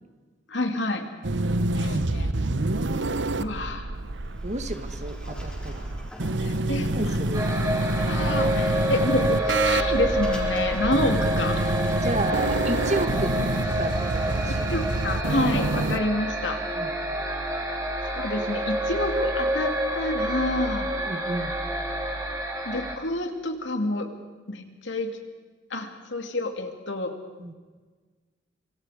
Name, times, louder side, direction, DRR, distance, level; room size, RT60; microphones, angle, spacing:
voice 1, 0.5-1.1 1.7-2.3 3.4-3.9 6.4-7.2 8.0-11.6 12.6-12.7 14.7-16.6 18.1-21.0 22.6-24.1 24.5-25.1 25.7-27.1, left 2 dB, 75° left, 5 dB, 2.6 m, -28 dB
sound 1, 1.2-16.0, right 2 dB, 75° right, 1.0 m, -27 dB
Sliding door, 3.9-13.4, equal, 5° left, 5.1 m, -43 dB
voice 2, 4.4-5.9 6.8-7.5 12.0-13.3 13.7-14.7 16.7-16.9 21.1-21.6 27.4-27.5, right 2 dB, 40° right, 9 dB, 1.5 m, -31 dB
sound 2, 7.3-23.0, right 1 dB, 20° right, 3.2 m, -28 dB
26.0 x 25.0 x 5.0 m, 1.4 s
head